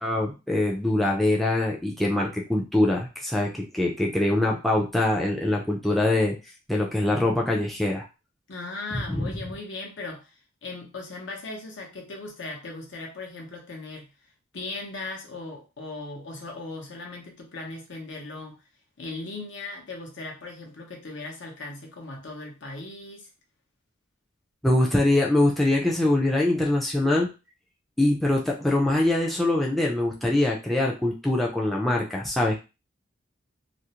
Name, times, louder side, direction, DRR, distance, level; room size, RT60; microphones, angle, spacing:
voice 1, 0.0-6.4 6.7-8.0 8.9-9.3 24.6-27.3 28.0-32.6, left 1 dB, ahead, -2 dB, 0.4 m, -23 dB
voice 2, 8.5-14.1 14.5-18.6 19.0-23.3, left 3 dB, 70° left, 0 dB, 0.8 m, -38 dB
2.5 x 2.0 x 2.8 m, 0.29 s
head